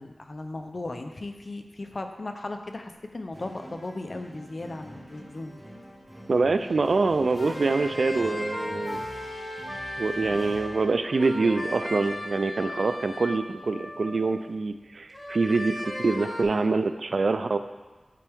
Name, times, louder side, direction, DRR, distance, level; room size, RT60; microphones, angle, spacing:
voice 1, 0.0-5.6, left 2 dB, 50° left, 6 dB, 0.6 m, -37 dB
sound 1, 3.3-11.2, equal, 20° right, 2.1 m, -44 dB
voice 2, 6.3-9.1 10.0-17.6, right 3 dB, 70° right, 9 dB, 0.3 m, -25 dB
sound 2, 7.3-14.4 15.1-16.4, left 1 dB, 30° left, 1.1 m, -36 dB
10.0 x 4.5 x 3.5 m, 1.3 s
wide cardioid pair, 70°, 0 cm